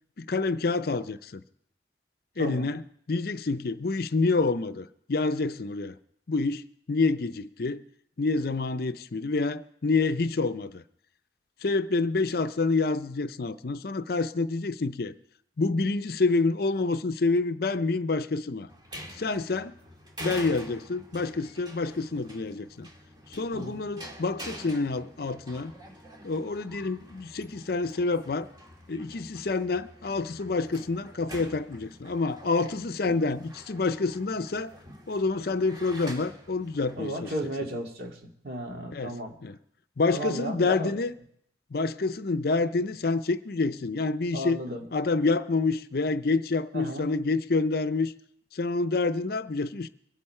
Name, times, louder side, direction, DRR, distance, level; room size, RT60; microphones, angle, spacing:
voice 1, 0.2-1.4 2.4-2.8 3.1-5.9 6.3-7.8 8.2-10.8 11.6-15.1 15.6-18.7 19.2-19.7 20.2-22.9 23.3-25.7 26.2-28.5 28.9-34.7 35.1-37.3 38.9-39.1 39.4-39.6 40.0-41.1 41.7-44.6 44.9-48.1 48.5-49.9, left 3 dB, 55° left, 0.5 m, -27 dB
voice 2, 2.4-2.7 23.5-23.8 33.0-33.4 37.0-39.3 40.1-41.0 44.3-44.9 46.7-47.1, right 1 dB, 55° right, 2.2 m, -35 dB
sound 1, 18.7-37.4, equal, 25° right, 2.0 m, -46 dB
23.5 x 8.4 x 4.3 m
head